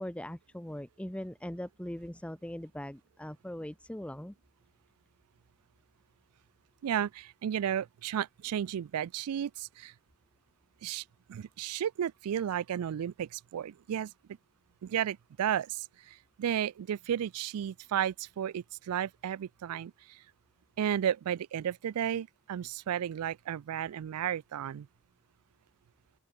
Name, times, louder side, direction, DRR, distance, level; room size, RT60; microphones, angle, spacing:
voice 1, 0.0-4.3, left 1 dB, 5° left, 0.8 m, -40 dB
voice 2, 6.8-9.9 10.8-14.1 14.8-20.2 20.8-24.9, right 9 dB, 80° right, 0.3 m, -33 dB
open air
head